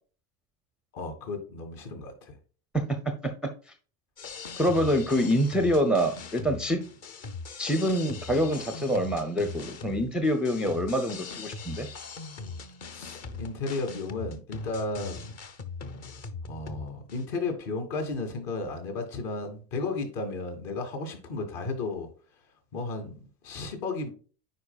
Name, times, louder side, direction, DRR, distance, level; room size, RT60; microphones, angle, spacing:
voice 1, 0.9-2.3 12.9-15.4 16.4-22.1 22.7-24.1, left 3 dB, 55° left, 5 dB, 2.8 m, -34 dB
voice 2, 2.7-3.5 4.6-6.8 7.6-11.9, equal, ahead, 7 dB, 0.5 m, -26 dB
sound 1, 4.2-17.3, left 4 dB, 30° left, 0.9 m, -40 dB
9.6 x 4.8 x 2.3 m, 0.39 s
supercardioid pair, 115°, 49 cm